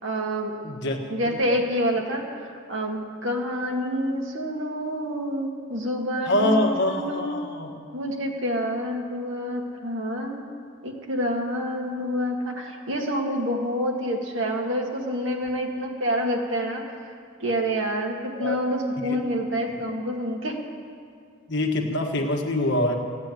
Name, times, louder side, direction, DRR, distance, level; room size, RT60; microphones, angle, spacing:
voice 1, 0.0-0.6 1.1-7.5 7.9-10.4 10.8-17.1 17.4-20.6, equal, 65° right, 1 dB, 2.0 m, -28 dB
voice 2, 0.6-1.0 1.2-1.4 6.3-7.7 18.4-18.6 19.7-19.8 21.5-23.0, left 1 dB, 55° left, 2 dB, 1.6 m, -24 dB
16.0 x 8.9 x 9.4 m, 2.3 s
head